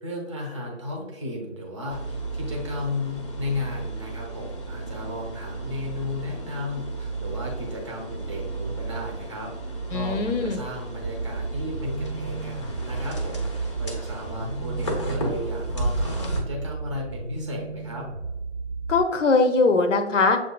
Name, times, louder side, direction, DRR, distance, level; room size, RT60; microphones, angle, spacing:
voice 1, 0.0-9.5 9.9-12.6 12.8-18.1, left 2 dB, 25° right, 0 dB, 0.8 m, -34 dB
sound 1, 1.9-16.4, right 2 dB, 25° left, 0.6 m, -33 dB
voice 2, 9.9-10.6 18.9-20.4, left 3 dB, 85° left, 6 dB, 0.7 m, -21 dB
sound 2, 11.0-19.0, right 3 dB, 55° right, 0.9 m, -34 dB
7.2 x 2.6 x 2.2 m, 1.1 s
figure-of-eight pair, 155°, 36 cm